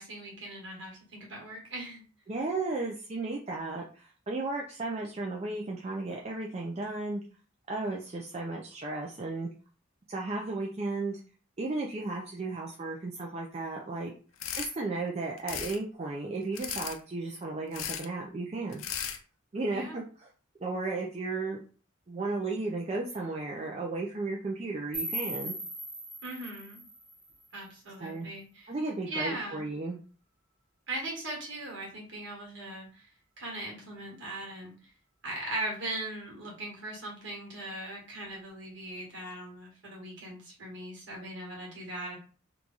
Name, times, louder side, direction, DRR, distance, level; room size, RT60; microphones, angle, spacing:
voice 1, 0.0-2.0 19.7-20.0 26.2-26.8 27.5-28.7 29.1-29.7 30.9-33.1 33.4-34.7 35.2-42.2, right 1 dB, 60° right, -1 dB, 1.5 m, -39 dB
voice 2, 2.3-7.2 7.7-9.5 10.1-11.2 11.6-14.1 14.5-18.8 19.5-20.3 20.6-21.6 22.1-25.5 28.0-28.3 28.7-30.0, right 3 dB, 30° right, -1 dB, 0.4 m, -34 dB
sound 1, 14.4-14.7 15.4-15.8 16.5-17.0 17.7-18.1 18.7-19.2, left 9 dB, 80° left, 0.5 m, -36 dB
sound 2, 24.9-27.9, right 1 dB, 5° right, 0.8 m, -39 dB
3.0 x 2.3 x 3.9 m, 0.39 s
head